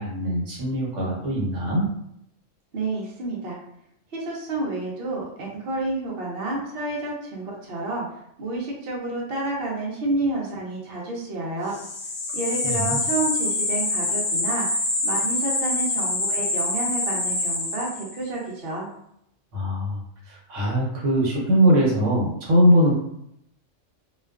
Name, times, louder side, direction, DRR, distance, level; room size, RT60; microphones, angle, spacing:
voice 1, 0.0-1.9 12.6-13.0 19.5-20.0 20.3-23.0, equal, 75° right, -4 dB, 1.1 m, -21 dB
voice 2, 2.7-3.6 4.1-8.1 8.4-11.8 12.3-14.7 15.0-18.9, right 2 dB, 60° right, -4 dB, 0.8 m, -29 dB
sound 1, 11.7-18.3, left 2 dB, 70° left, 0.8 m, -26 dB
2.3 x 2.3 x 2.3 m, 0.74 s
omnidirectional pair, 1.3 m